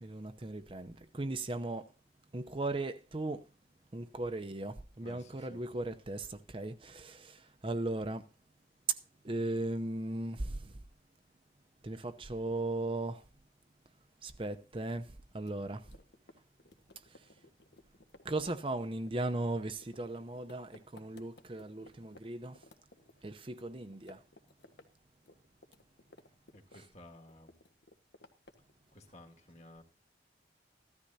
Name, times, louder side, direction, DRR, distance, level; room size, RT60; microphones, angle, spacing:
voice 1, 0.0-1.9 2.3-3.4 3.9-8.3 8.9-9.0 9.2-10.8 11.8-13.3 14.2-15.9 17.0-17.3 18.2-22.6 23.2-24.2 26.7-26.8, right 2 dB, 30° right, 0.7 m, -37 dB
voice 2, 5.0-5.6 26.5-27.6 28.9-29.8, left 1 dB, 40° left, 2.0 m, -55 dB
sound 1, 15.4-22.2 22.6-23.7 23.9-24.9 25.1-27.0 27.3-28.7, left 2 dB, 75° left, 1.5 m, -58 dB
15.5 x 13.5 x 2.8 m
head